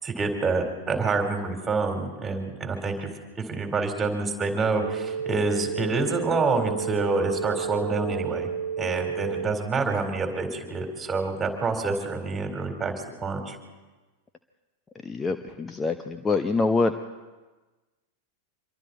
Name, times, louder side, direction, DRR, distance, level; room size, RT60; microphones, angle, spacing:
voice 1, 0.0-3.1 3.5-8.5 8.8-12.9 13.2-13.6, right 3 dB, 15° right, 4 dB, 4.1 m, -27 dB
sound 1, 4.6-9.6, right 7 dB, 65° right, 0.6 m, -31 dB
voice 2, 15.0-16.9, left 3 dB, 15° left, 8 dB, 0.8 m, -25 dB
26.5 x 23.0 x 4.3 m, 1.2 s
figure-of-eight pair, 90°, 0 cm